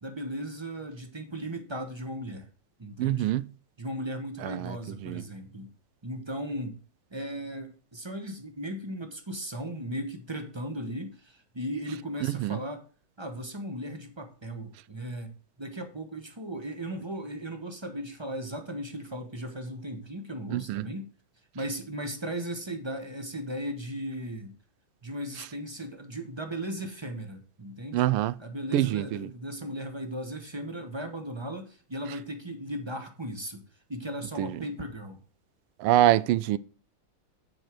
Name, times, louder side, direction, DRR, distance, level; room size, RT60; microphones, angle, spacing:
voice 1, 0.0-2.5 2.8-3.3 3.8-5.7 6.0-6.8 7.1-12.8 13.2-15.3 15.6-21.1 21.5-24.5 25.0-28.1 28.4-33.6 33.9-35.2, right 1 dB, 25° right, 0.6 m, -37 dB
voice 2, 3.0-3.4 4.4-5.2 12.3-12.6 20.5-20.8 27.9-28.3 28.7-29.3 34.4-34.6 35.8-36.6, right 14 dB, 90° right, 1.5 m, -25 dB
9.1 x 4.8 x 6.0 m
omnidirectional pair, 2.4 m